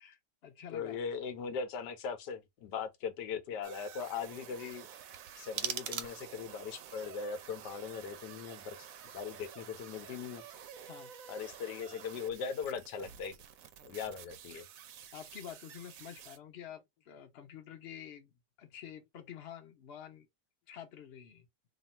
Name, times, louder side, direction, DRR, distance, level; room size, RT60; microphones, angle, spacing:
voice 1, 0.0-1.0 10.8-11.1 15.1-20.3 20.7-21.5, left 9 dB, 50° left, 0.9 m, -49 dB
voice 2, 0.7-4.9 5.4-8.9 9.1-10.4 11.3-13.4 13.8-14.7, left 6 dB, 85° left, 1.3 m, -39 dB
sound 1, 3.6-16.4, right 9 dB, 65° right, 0.9 m, -51 dB
sound 2, 5.1-6.6, right 9 dB, 90° right, 1.3 m, -39 dB
3.1 x 2.5 x 4.1 m
omnidirectional pair, 1.8 m